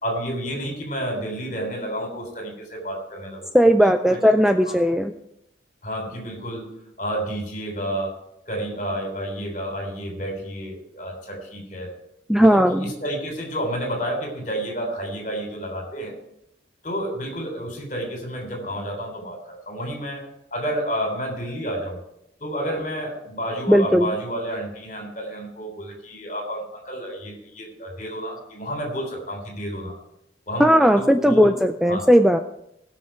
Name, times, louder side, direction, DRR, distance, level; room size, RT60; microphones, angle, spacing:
voice 1, 0.0-4.2 4.6-5.0 5.8-6.7 7.0-8.2 8.5-11.9 12.4-16.1 16.8-19.4 19.6-20.2 20.5-22.0 22.4-29.9 30.5-31.5 31.9-32.0, equal, 40° left, 2 dB, 3.3 m, -30 dB
voice 2, 3.5-5.1 12.3-12.9 23.7-24.1 30.6-32.4, equal, ahead, 7 dB, 0.3 m, -17 dB
19.0 x 6.4 x 4.4 m, 0.80 s
head